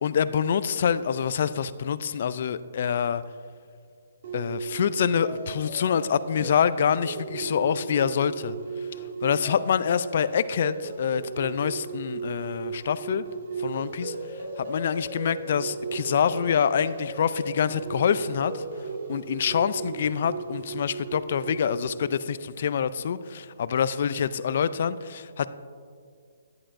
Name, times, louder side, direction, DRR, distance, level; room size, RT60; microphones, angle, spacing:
voice 1, 0.0-3.2 4.3-8.6 9.2-13.2 13.6-14.1 14.6-18.6 19.1-25.5, left 7 dB, 55° left, 15 dB, 0.3 m, -26 dB
sound 1, 4.2-21.8, right 4 dB, 50° right, 2.1 m, -36 dB
11.0 x 10.5 x 2.6 m, 2.1 s
hypercardioid pair, 160°, 0 cm